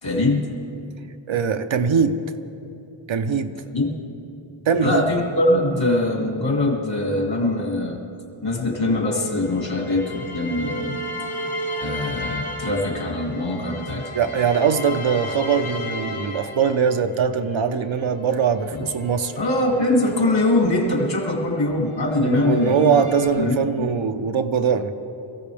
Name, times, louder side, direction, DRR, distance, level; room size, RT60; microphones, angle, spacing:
voice 1, 0.0-0.5 3.7-4.0 4.8-8.0 8.4-11.0 11.8-14.1 18.7-18.9 19.3-23.0 23.4-23.9, left 2 dB, 65° left, 0 dB, 2.5 m, -22 dB
voice 2, 1.3-2.2 3.1-3.6 4.7-5.0 14.1-19.3 22.2-24.9, right 6 dB, 70° right, 8 dB, 0.8 m, -21 dB
sound 1, 9.0-17.2 17.8-21.6 22.0-23.3, equal, 80° left, 1.9 m, -34 dB
22.5 x 15.0 x 3.5 m, 2.8 s
wide cardioid pair, 75°, 48 cm